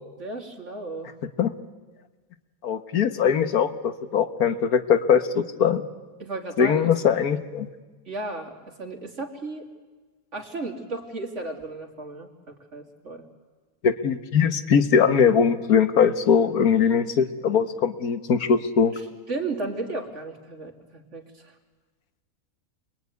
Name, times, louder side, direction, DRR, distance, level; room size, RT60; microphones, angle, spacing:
voice 1, 0.2-1.1 6.2-6.9 8.1-9.7 10.3-13.3 18.9-19.0 19.3-21.6, right 3 dB, 50° right, 2 dB, 3.2 m, -34 dB
voice 2, 2.6-5.8 6.6-7.7 13.8-18.9, left 7 dB, 75° left, 10 dB, 1.8 m, -21 dB
28.0 x 22.5 x 9.5 m, 1.3 s
omnidirectional pair, 1.6 m